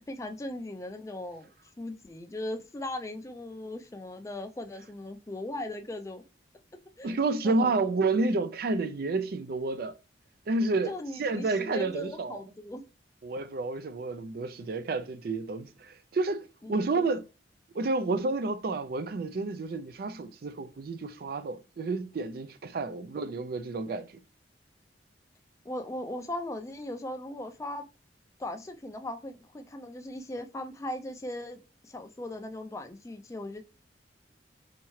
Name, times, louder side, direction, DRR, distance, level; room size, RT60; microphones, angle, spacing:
voice 1, 0.1-1.5 1.8-6.2 7.0-7.2 7.4-7.8 10.9-12.9 16.6-17.1 22.8-23.1 25.6-27.8 28.4-33.6, left 1 dB, 15° left, 0.4 m, -38 dB
voice 2, 7.0-10.0 10.5-12.4 13.2-17.2 17.7-24.1, right 3 dB, 55° right, 0.4 m, -30 dB
4.3 x 3.6 x 3.1 m
head